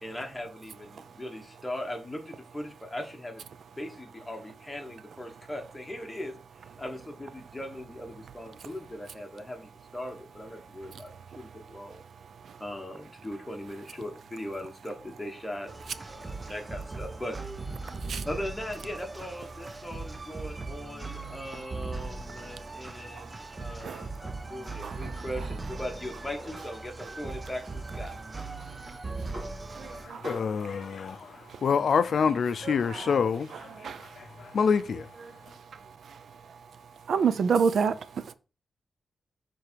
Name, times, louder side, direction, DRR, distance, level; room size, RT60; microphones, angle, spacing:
voice 1, 0.0-3.4 3.8-6.3 6.8-12.0 12.6-17.4 18.2-28.2, left 1 dB, 10° left, 1.3 m, -39 dB
sound 1, 15.7-30.1, right 3 dB, 25° right, 0.6 m, -39 dB
sound 2, 23.5-34.8, right 1 dB, 50° right, 2.1 m, -50 dB
voice 2, 24.8-25.1 29.7-30.3 31.5-31.6 33.8-34.2 35.7-36.2 37.1-38.3, right 6 dB, 80° right, 0.5 m, -28 dB
voice 3, 29.8-35.6, left 6 dB, 70° left, 0.4 m, -28 dB
6.7 x 3.8 x 4.6 m
wide cardioid pair, 140°, 0 cm